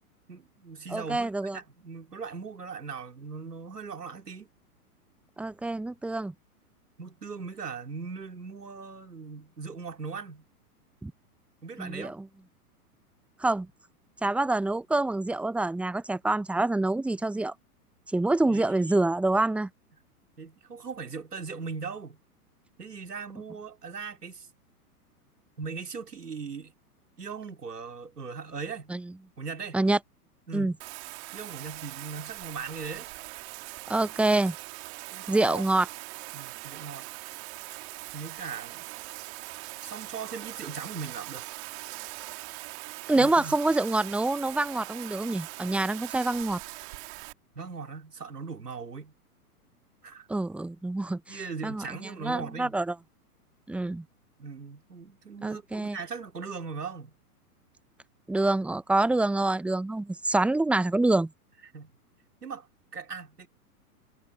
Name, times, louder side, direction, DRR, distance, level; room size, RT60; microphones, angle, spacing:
voice 1, 0.3-4.5 7.0-10.4 11.6-12.2 18.5-19.0 20.4-22.2 22.8-24.5 25.6-26.7 27.2-28.9 29.4-29.8 30.5-30.8 31.3-33.1 35.1-35.6 36.3-37.1 38.1-38.9 39.8-41.4 43.2-43.6 47.5-49.1 50.0-50.3 51.3-52.8 54.4-57.1 61.7-61.9 62.4-62.7 62.9-63.5, right 5 dB, 80° right, 3.4 m, -39 dB
voice 2, 0.9-1.6 5.4-6.3 11.0-11.1 11.8-12.3 13.4-13.7 14.2-17.5 18.1-19.7 28.9-29.1 29.7-30.0 30.5-30.7 33.9-34.6 35.3-35.9 43.1-46.6 50.3-53.0 53.7-54.0 55.4-56.0 58.3-61.3, right 2 dB, 5° right, 0.7 m, -26 dB
Bathtub (filling or washing), 30.8-47.3, right 24 dB, 45° right, 2.6 m, -41 dB
figure-of-eight pair, 105°, 46 cm